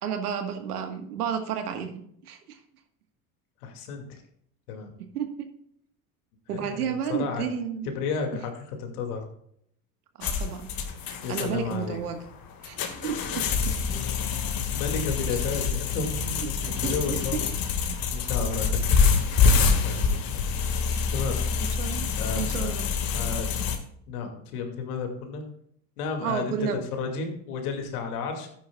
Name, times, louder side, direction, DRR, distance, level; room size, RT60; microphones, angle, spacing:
voice 1, 0.0-2.6 5.0-5.5 6.5-7.9 10.2-10.7 11.3-12.2 12.6-13.7 15.3-15.4 16.8-17.2 21.8-22.1 22.4-22.9 26.2-26.8, right 8 dB, 85° right, 6 dB, 1.6 m, -32 dB
voice 2, 3.6-4.2 4.7-5.0 6.5-7.5 7.8-9.2 11.2-12.0 13.4-13.5 13.9-14.1 14.7-17.5 18.1-20.6 21.1-21.4 22.2-22.7 23.1-23.6 24.1-25.4 26.0-28.5, left 5 dB, 75° left, 4 dB, 2.5 m, -33 dB
sound 1, 10.2-23.8, left 5 dB, 50° left, 2.0 m, -26 dB
13.0 x 10.0 x 2.4 m, 0.69 s
hypercardioid pair, 75°, 44 cm